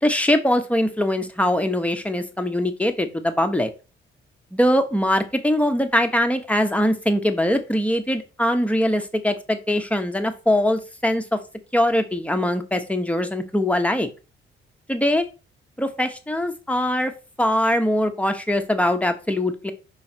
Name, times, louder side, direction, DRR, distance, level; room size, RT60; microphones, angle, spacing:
voice 1, 0.0-3.7 4.5-11.4 11.7-14.1 14.9-15.2 15.8-17.1 17.4-19.7, left 1 dB, 5° left, 7 dB, 1.2 m, -22 dB
5.7 x 4.7 x 4.5 m, 0.32 s
cardioid pair, 90°, 20 cm